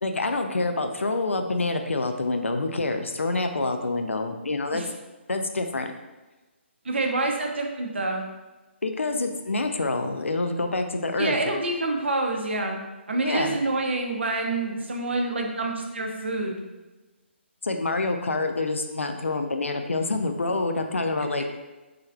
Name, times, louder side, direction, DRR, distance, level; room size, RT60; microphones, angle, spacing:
voice 1, 0.0-4.8 5.3-5.9 8.8-11.4 13.2-13.6 17.6-21.4, left 3 dB, 80° left, 5 dB, 0.4 m, -27 dB
voice 2, 6.8-8.2 11.2-16.6, right 2 dB, 65° right, 2 dB, 0.6 m, -27 dB
3.4 x 3.2 x 2.2 m, 1.2 s
figure-of-eight pair, 140°, 7 cm